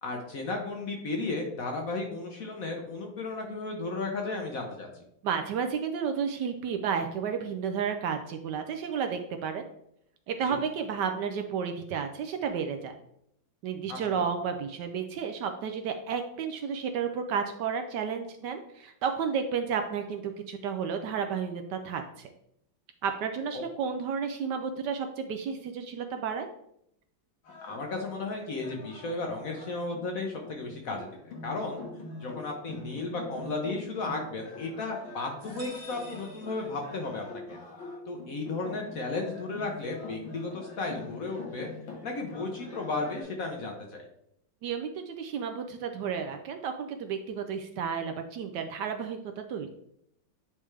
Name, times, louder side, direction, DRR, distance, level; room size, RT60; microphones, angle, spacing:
voice 1, 0.0-4.9 10.4-10.6 13.9-14.2 23.5-23.6 27.6-31.8 32.2-37.6 38.1-41.7 42.0-44.0, left 3 dB, 55° left, 2 dB, 1.0 m, -34 dB
voice 2, 5.2-9.6 10.3-13.0 13.6-22.3 23.0-26.5 44.6-49.2 49.5-49.7, right 6 dB, 75° right, 6 dB, 1.0 m, -32 dB
sound 1, 27.5-43.2, left 2 dB, 90° left, 2.2 m, -44 dB
sound 2, 35.4-37.3, equal, 55° right, 1.6 m, -50 dB
8.6 x 3.4 x 3.2 m, 0.75 s
omnidirectional pair, 2.1 m